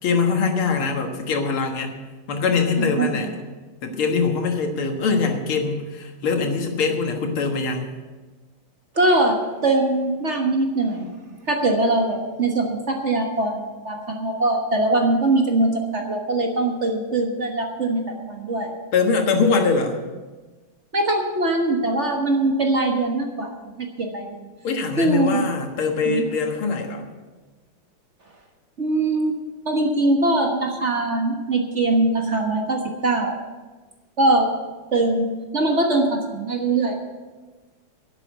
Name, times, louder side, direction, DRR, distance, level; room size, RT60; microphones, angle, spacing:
voice 1, 0.0-1.9 2.3-3.3 3.8-7.9 18.9-20.0 24.6-27.0, left 4 dB, 90° left, 4 dB, 2.4 m, -22 dB
voice 2, 2.8-3.3 8.9-9.4 9.6-11.1 11.5-18.7 20.9-23.5 23.8-24.5 25.0-25.4 26.0-26.2 28.8-29.3 29.6-33.4 34.2-34.5 34.9-35.3 35.5-37.0, right 2 dB, 40° right, 2 dB, 1.5 m, -22 dB
11.0 x 8.4 x 8.2 m, 1.3 s
omnidirectional pair, 2.3 m